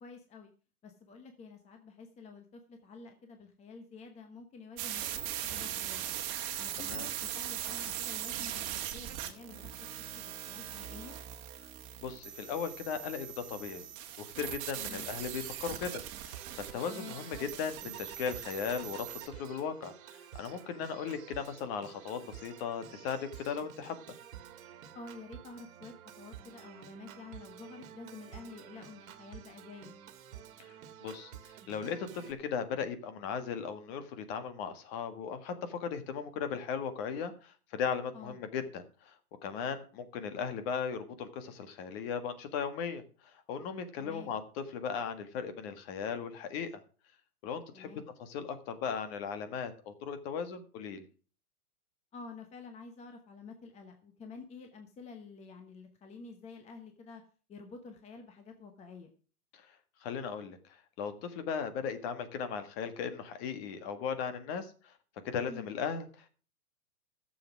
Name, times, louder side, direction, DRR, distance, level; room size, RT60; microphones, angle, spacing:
voice 1, 0.0-0.5 0.8-6.2 6.6-9.7 10.1-11.2 14.9-15.1 16.9-17.2 24.9-29.9 38.1-38.4 44.0-44.3 47.7-48.1 52.1-57.2 57.5-59.1 65.5-65.7, left 4 dB, 15° left, 6 dB, 1.0 m, -49 dB
sound 1, 4.8-19.3, right 11 dB, 35° right, 1.8 m, -40 dB
voice 2, 12.0-13.9 14.2-24.0 30.7-30.8 31.0-31.3 31.7-39.1 39.4-43.0 43.5-46.7 47.4-47.9 48.2-51.1 59.5-59.6 60.0-60.6 61.0-64.9 65.2-66.3, left 6 dB, 40° left, 10 dB, 1.7 m, -37 dB
Organ, 16.3-32.3, right 9 dB, 60° right, 1.8 m, -51 dB
13.0 x 7.2 x 6.1 m, 0.39 s
hypercardioid pair, 135°, 44 cm